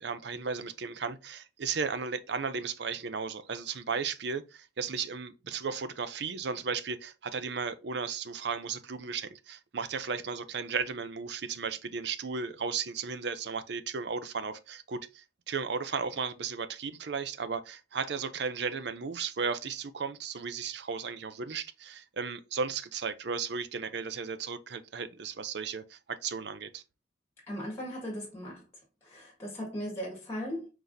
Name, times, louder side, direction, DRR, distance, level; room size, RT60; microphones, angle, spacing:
voice 1, 0.0-26.8, right 5 dB, 60° right, 0.5 m, -35 dB
voice 2, 27.5-28.6 29.0-30.7, equal, 15° left, 1.8 m, -37 dB
4.7 x 4.0 x 2.6 m
head